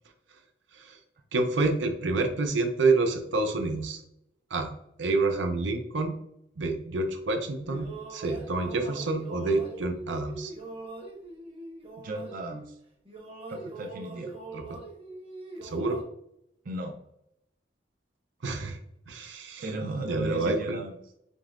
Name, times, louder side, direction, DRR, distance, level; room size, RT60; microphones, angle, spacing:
voice 1, 1.3-4.0 4.5-4.7 5.0-6.1 6.6-10.5 14.5-14.6 15.6-16.0 18.4-18.8 19.1-19.6 20.1-20.8, right 3 dB, 90° right, 5 dB, 0.7 m, -28 dB
sound 1, 7.5-12.8 13.1-16.0, right 3 dB, 30° right, 0.8 m, -42 dB
voice 2, 12.0-12.8 13.5-14.3 16.6-17.0 19.6-20.9, right 1 dB, 50° right, 4 dB, 0.5 m, -35 dB
5.2 x 2.9 x 2.5 m, 0.76 s
head